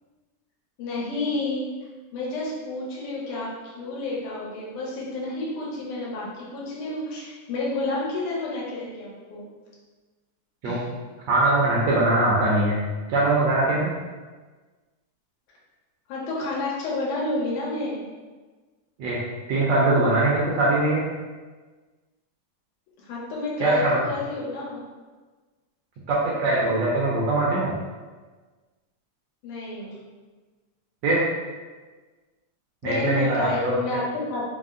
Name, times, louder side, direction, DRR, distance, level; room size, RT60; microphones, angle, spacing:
voice 1, 0.8-1.7 2.1-9.5 10.6-10.8 16.1-18.0 23.0-24.8 29.4-30.0 32.8-34.4, left 2 dB, 80° left, -5 dB, 2.3 m, -30 dB
voice 2, 11.3-12.8 13.1-13.9 19.0-19.2 19.5-21.0 23.6-24.0 26.1-27.7 31.0-31.2 32.8-33.7, right 2 dB, 75° right, -5 dB, 1.6 m, -21 dB
5.2 x 2.0 x 3.6 m, 1.3 s
omnidirectional pair, 3.6 m